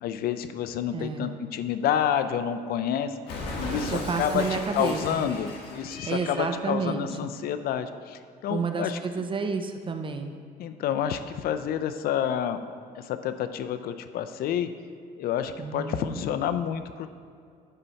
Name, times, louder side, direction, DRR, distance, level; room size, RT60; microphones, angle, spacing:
voice 1, 0.0-9.0 10.6-12.6 13.0-14.7 15.2-17.1, left 9 dB, 65° left, 10 dB, 0.5 m, -29 dB
voice 2, 0.9-1.4 3.9-5.2 6.1-7.3 8.5-10.3 15.6-16.2, right 5 dB, 30° right, 6 dB, 0.5 m, -30 dB
Cat, 3.3-6.6, left 2 dB, 80° left, 1.4 m, -36 dB
9.0 x 4.0 x 5.7 m, 2.4 s
cardioid pair, 110°, 17 cm